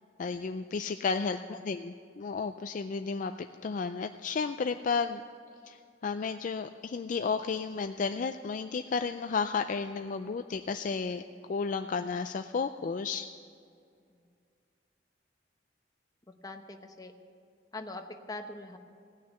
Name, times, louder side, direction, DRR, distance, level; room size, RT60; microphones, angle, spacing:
voice 1, 0.2-5.2 5.7-5.8 6.0-11.2 11.5-13.3, left 5 dB, 45° left, 8 dB, 0.4 m, -32 dB
voice 2, 1.0-1.5 16.3-17.1 17.7-18.8, left 2 dB, 20° left, 5 dB, 0.9 m, -43 dB
17.0 x 6.6 x 9.6 m, 2.3 s
head